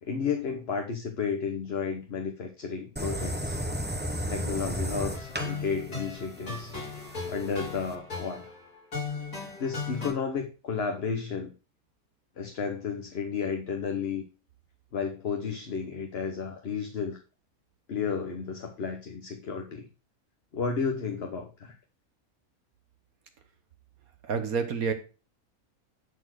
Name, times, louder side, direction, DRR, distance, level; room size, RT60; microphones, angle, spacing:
voice 1, 0.0-3.6 4.3-6.7 7.2-8.5 9.6-11.5 12.4-14.2 14.9-17.2 17.9-19.9 20.5-21.7, left 6 dB, 45° left, 3 dB, 1.2 m, -32 dB
sound 1, 3.0-7.9, equal, 10° right, 0.8 m, -34 dB
sound 2, 5.1-10.1, left 4 dB, 85° left, 6.8 m, -37 dB
voice 2, 24.2-24.9, right 6 dB, 70° right, 7 dB, 1.6 m, -28 dB
11.0 x 4.4 x 6.3 m, 0.33 s
omnidirectional pair, 1.5 m